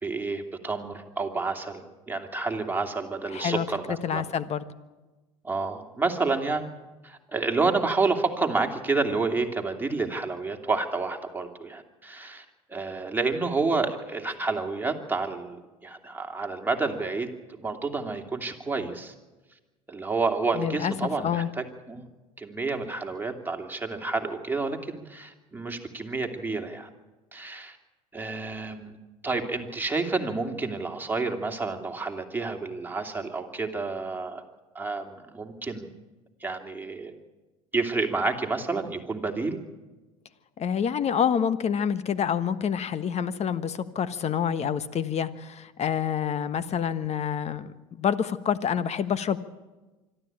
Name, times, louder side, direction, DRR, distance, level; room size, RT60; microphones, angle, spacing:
voice 1, 0.0-4.2 5.4-6.7 7.0-15.6 15.8-19.1 19.9-22.1 22.4-26.9 27.3-27.8 28.1-28.9 29.2-34.4 34.7-35.9 36.4-37.1 37.7-39.6, right 3 dB, 10° right, 3 dB, 2.8 m, -29 dB
voice 2, 3.3-4.6 20.5-20.9 21.2-21.5 40.6-49.4, left 8 dB, 40° left, 14 dB, 1.3 m, -27 dB
25.0 x 12.5 x 8.8 m, 1.2 s
hypercardioid pair, 75°, 18 cm